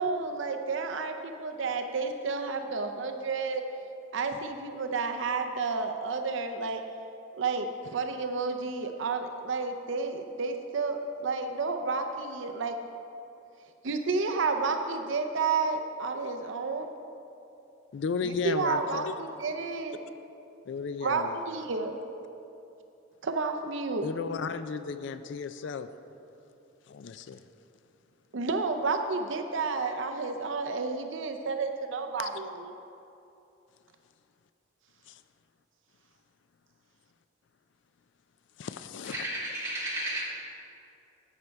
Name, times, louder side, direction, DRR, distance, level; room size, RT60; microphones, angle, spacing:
voice 1, 0.0-3.6 4.1-6.8 7.4-12.8 13.8-16.9 18.2-20.0 21.0-22.0 23.2-24.1 28.3-32.7, right 4 dB, 70° right, 0.6 m, -31 dB
voice 2, 17.9-19.2 20.7-21.4 24.0-25.9 26.9-27.4 32.2-32.3 35.1-35.2 38.6-39.3, left 5 dB, 60° left, 0.3 m, -34 dB
voice 3, 39.0-40.2, right 1 dB, 15° right, 2.3 m, -33 dB
11.5 x 8.0 x 4.6 m
head